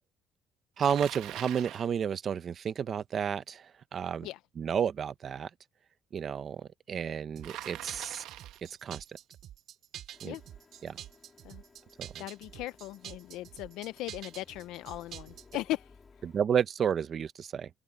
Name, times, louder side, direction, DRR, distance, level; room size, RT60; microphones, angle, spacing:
voice 1, 0.8-4.3 4.6-5.5 6.1-8.2 8.8-9.0 10.2-10.4 10.8-11.0 12.0-12.2 16.2-17.7, right 8 dB, 35° right, 0.8 m, -31 dB
Bicycle, 0.8-1.9 7.4-8.7, right 14 dB, 75° right, 1.1 m, -43 dB
sound 1, 7.4-15.6, right 11 dB, 55° right, 3.4 m, -47 dB
Printer, 10.1-16.4, left 4 dB, 20° left, 2.2 m, -60 dB
voice 2, 12.2-15.9, left 16 dB, 85° left, 0.5 m, -38 dB
cardioid pair, 170°, 0 cm